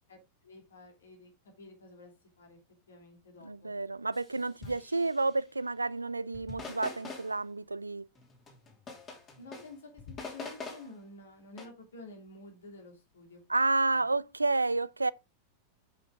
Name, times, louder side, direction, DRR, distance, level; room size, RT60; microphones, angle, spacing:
voice 1, 0.1-1.3 1.6-2.1 2.4-2.6 2.9-3.7 4.6-4.7 9.4-14.0, left 2 dB, 65° left, 2.9 m, -51 dB
voice 2, 3.4-8.1 13.5-15.1, right 3 dB, 80° right, 0.3 m, -30 dB
sound 1, 4.1-4.3 4.6-5.3 6.3-7.3 8.1-9.7 10.0-10.9 11.6-11.7, left 4 dB, 25° left, 2.9 m, -44 dB
7.8 x 6.1 x 3.7 m
figure-of-eight pair, 90°, 0 cm